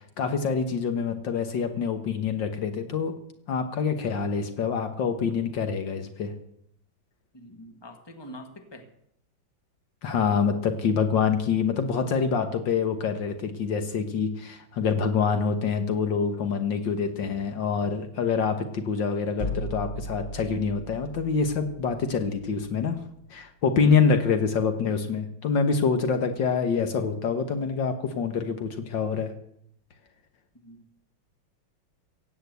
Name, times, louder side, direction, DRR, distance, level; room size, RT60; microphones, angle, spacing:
voice 1, 0.0-3.1 3.5-6.3 10.0-23.0 23.3-29.3, left 5 dB, 65° left, 8 dB, 1.9 m, -26 dB
voice 2, 7.3-8.9 23.8-24.1 30.6-30.8, equal, 15° left, 5 dB, 1.7 m, -43 dB
sound 1, 19.4-23.2, left 1 dB, 45° left, 0.6 m, -37 dB
16.5 x 8.7 x 8.2 m, 0.72 s
omnidirectional pair, 2.2 m